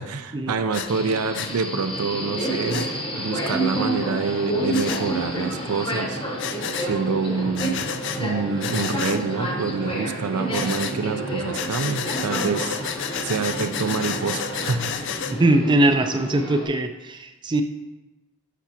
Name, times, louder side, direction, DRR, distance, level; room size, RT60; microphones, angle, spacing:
voice 1, 0.0-2.9 3.2-6.2 6.8-7.9 8.2-12.8 13.2-14.9, right 4 dB, 80° right, 9 dB, 0.5 m, -26 dB
Breathing, 0.7-0.9 1.3-1.5 2.7-2.9 4.7-5.0 6.4-6.9 7.6-8.2 8.6-9.2 10.5-11.0 11.5-15.3, left 8 dB, 55° left, 0.4 m, -30 dB
Subway metro underground, 0.9-16.7, right 1 dB, 20° left, 0.9 m, -30 dB
sound 1, 2.3-14.9, right 2 dB, 65° right, 1.0 m, -42 dB
voice 2, 15.4-17.6, right 1 dB, 20° right, 8 dB, 0.3 m, -21 dB
8.1 x 5.9 x 2.9 m, 1.1 s
head